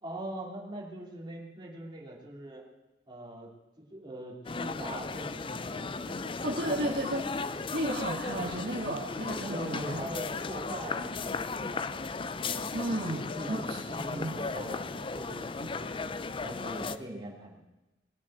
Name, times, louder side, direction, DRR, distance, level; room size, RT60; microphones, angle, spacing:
voice 1, 0.0-2.6 3.1-3.5 3.8-6.9 9.5-12.0 13.0-15.5 15.8-17.6, right 1 dB, 25° right, -2 dB, 2.9 m, -42 dB
sound 1, 4.4-17.0, left 4 dB, 30° left, 0.4 m, -36 dB
voice 2, 6.4-7.2 7.7-10.0 12.7-13.8 14.1-14.4, right 1 dB, 55° right, 0 dB, 1.7 m, -33 dB
20.5 x 7.4 x 8.0 m, 1.1 s
head